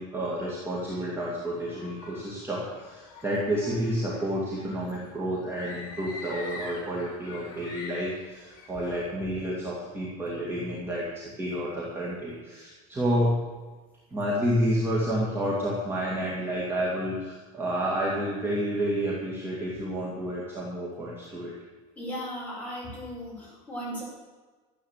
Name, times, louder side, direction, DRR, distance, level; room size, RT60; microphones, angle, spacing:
voice 1, 0.0-13.4 14.1-21.5, equal, 15° right, -5 dB, 2.3 m, -30 dB
sound 1, 1.5-9.0, left 3 dB, 65° left, 4.5 m, -44 dB
voice 2, 22.0-24.0, equal, 10° left, -6 dB, 5.7 m, -36 dB
13.5 x 8.7 x 7.4 m, 1.3 s
cardioid pair, 165°, 17 cm